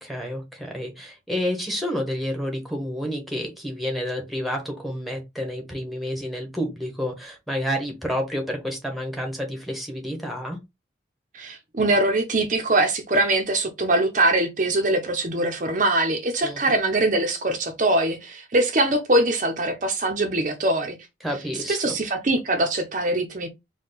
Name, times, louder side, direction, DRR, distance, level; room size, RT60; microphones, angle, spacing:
voice 1, 0.0-10.6 16.4-16.7 21.2-21.9, equal, ahead, 1.0 m, -29 dB
voice 2, 11.3-21.0 21.7-23.5, right 2 dB, 40° right, 0.7 m, -22 dB
4.4 x 2.3 x 3.9 m
head